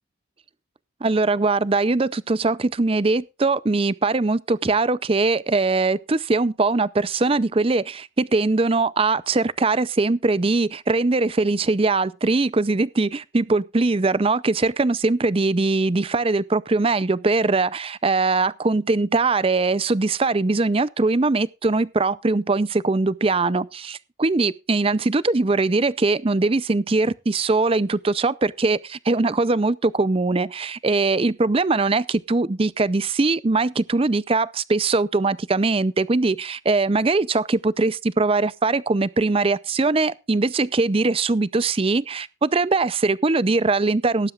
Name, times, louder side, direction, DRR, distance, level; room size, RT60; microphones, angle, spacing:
voice 1, 1.0-44.3, right 3 dB, 25° right, 0.5 m, -21 dB
18.5 x 11.0 x 2.4 m
head